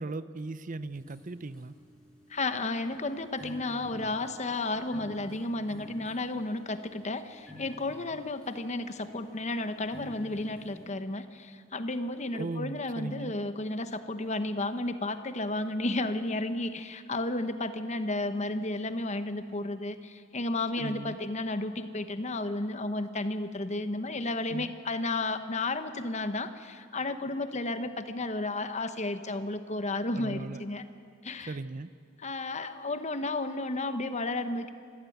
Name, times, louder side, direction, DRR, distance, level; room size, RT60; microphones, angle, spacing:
voice 1, 0.0-1.7 12.3-13.3 20.8-21.2 24.5-24.7 30.2-30.6 31.5-31.9, right 3 dB, 40° right, 14 dB, 0.6 m, -38 dB
sound 1, 0.9-10.8, left 1 dB, 5° left, 7.3 m, -51 dB
voice 2, 2.3-30.8 31.2-31.6 32.2-34.7, left 2 dB, 35° left, 10 dB, 1.1 m, -33 dB
25.5 x 15.0 x 9.3 m, 2.3 s
head